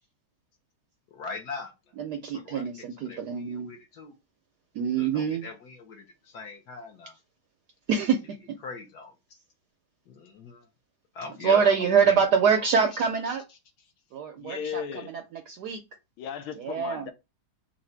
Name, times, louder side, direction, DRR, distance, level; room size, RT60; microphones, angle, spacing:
voice 1, 1.1-1.9 2.3-4.1 4.9-7.2 8.6-9.4 10.1-10.7 11.1-12.3 12.5-12.9 13.3-13.9, left 4 dB, 60° left, 1.2 m, -41 dB
voice 2, 2.0-3.7 4.7-5.5 7.9-8.2 11.4-13.4 14.1-14.8 15.5-15.8 16.6-17.0, right 6 dB, 75° right, 0.9 m, -24 dB
voice 3, 14.4-15.1 16.2-17.1, left 8 dB, 90° left, 1.5 m, -36 dB
4.1 x 2.4 x 4.4 m
omnidirectional pair, 2.3 m